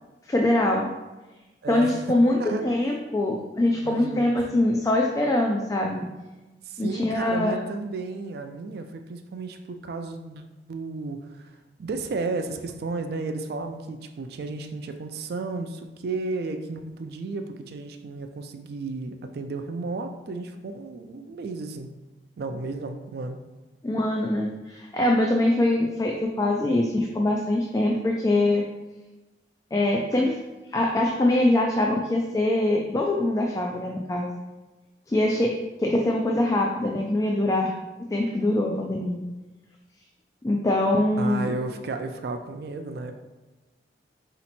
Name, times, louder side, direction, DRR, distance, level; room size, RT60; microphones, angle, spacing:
voice 1, 0.3-0.9 1.7-6.1 6.8-7.6 23.8-28.6 29.7-30.4 30.7-34.3 35.1-35.5 35.8-37.7 38.1-39.2 40.4-41.5, left 1 dB, 20° left, 0 dB, 0.3 m, -23 dB
voice 2, 1.6-2.0 2.4-2.6 3.7-4.3 6.7-10.4 10.7-21.9 22.4-23.4 41.2-43.1, right 3 dB, 60° right, 7 dB, 0.4 m, -33 dB
4.1 x 2.9 x 4.2 m, 1.1 s
head